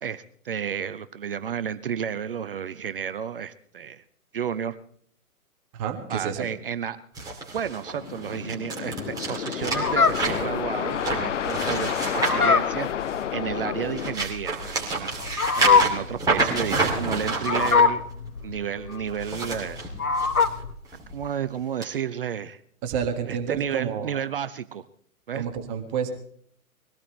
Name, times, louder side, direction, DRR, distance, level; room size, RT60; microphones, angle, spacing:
voice 1, 0.0-4.0 4.3-4.8 6.1-7.0 7.5-12.9 13.3-15.1 15.5-18.0 18.4-19.8 21.1-22.6 23.3-24.8 25.3-25.4, right 8 dB, 40° right, 13 dB, 0.6 m, -31 dB
voice 2, 5.7-6.5 22.8-24.2 25.3-26.1, right 7 dB, 25° right, 6 dB, 1.7 m, -29 dB
sound 1, 7.1-13.3 13.7-17.8 19.1-20.5 20.9-21.2 21.8-21.9, right 3 dB, 10° right, 3.1 m, -29 dB
sound 2, 7.9-14.2, left 9 dB, 55° left, 0.6 m, -30 dB
Fowl, 9.7-20.7, left 5 dB, 80° left, 1.3 m, -24 dB
23.0 x 17.5 x 3.3 m, 0.62 s
figure-of-eight pair, 125°, 44 cm